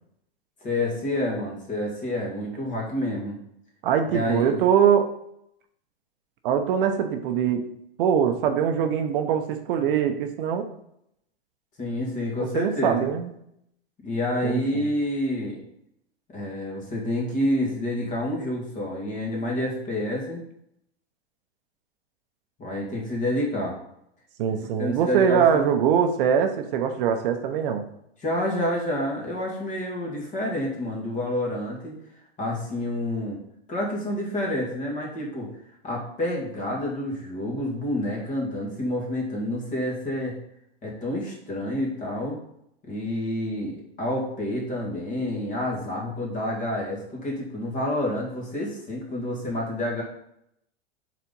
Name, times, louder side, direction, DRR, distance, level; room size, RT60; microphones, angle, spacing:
voice 1, 0.6-3.4 4.1-4.6 11.8-13.1 14.0-15.6 16.3-20.4 22.6-23.8 24.5-25.8 28.2-32.0 32.4-33.4 33.7-35.5 35.8-40.4 40.8-42.4 42.8-50.0, left 1 dB, 25° left, -2 dB, 2.0 m, -28 dB
voice 2, 3.8-5.1 6.4-7.7 8.0-10.7 12.5-13.3 14.4-14.9 24.4-27.8, right 8 dB, 60° right, 6 dB, 0.8 m, -22 dB
4.6 x 4.2 x 5.3 m, 0.75 s
supercardioid pair, 140°, 31 cm